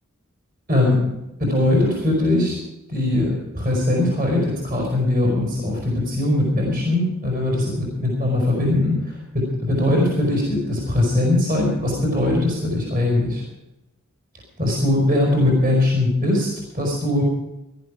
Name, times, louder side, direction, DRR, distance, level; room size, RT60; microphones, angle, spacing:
voice 1, 0.7-1.1 1.4-2.6 2.9-13.4 14.6-16.5 16.7-17.2, left 1 dB, 40° right, -1 dB, 4.9 m, -20 dB
19.0 x 12.0 x 4.9 m, 0.94 s
head